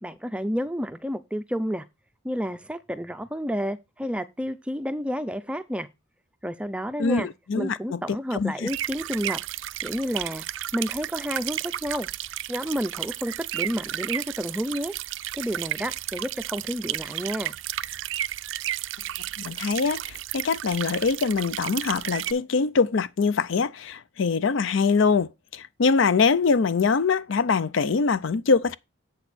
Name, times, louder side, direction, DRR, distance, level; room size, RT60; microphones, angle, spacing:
voice 1, 0.0-1.9 2.2-5.9 6.4-7.3 7.6-9.4 9.8-10.5 10.7-12.1 12.5-14.9 15.3-17.5, equal, 5° right, 0.4 m, -30 dB
voice 2, 7.0-8.0 8.3-8.7 19.4-28.8, left 5 dB, 65° left, 0.5 m, -23 dB
sound 1, 8.7-22.3, right 13 dB, 65° right, 0.4 m, -33 dB
7.9 x 6.4 x 4.1 m
head